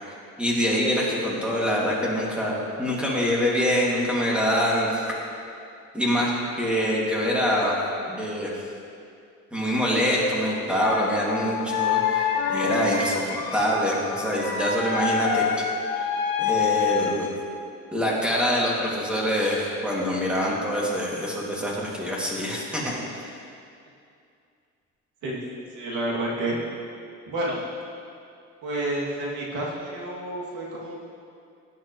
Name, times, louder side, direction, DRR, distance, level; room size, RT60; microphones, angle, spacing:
voice 1, 0.1-5.0 5.9-6.3 6.6-7.7 8.1-8.5 9.5-15.4 16.4-17.3 17.9-23.0, equal, 5° right, -5 dB, 2.5 m, -25 dB
sound 1, 10.8-17.3, left 7 dB, 80° left, 1.9 m, -26 dB
voice 2, 25.2-26.6 27.3-27.6 28.6-31.0, right 1 dB, 75° right, -5 dB, 2.7 m, -30 dB
17.5 x 10.0 x 3.2 m, 2.4 s
cardioid pair, 135°, 30 cm